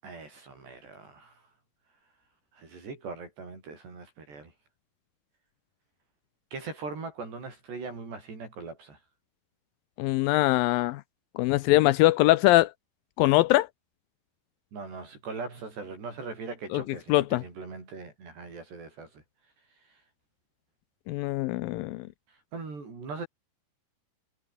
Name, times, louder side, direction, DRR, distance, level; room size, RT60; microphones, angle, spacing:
voice 1, 0.0-1.5 2.5-4.5 6.5-9.0 14.7-19.2 19.7-20.0 22.3-23.3, right 4 dB, 75° right, 10.5 m, -40 dB
voice 2, 10.0-11.0 11.4-12.7 13.2-13.7 16.7-16.8 17.1-17.4 21.1-22.1, left 18 dB, 85° left, 2.0 m, -22 dB
omnidirectional pair, 4.9 m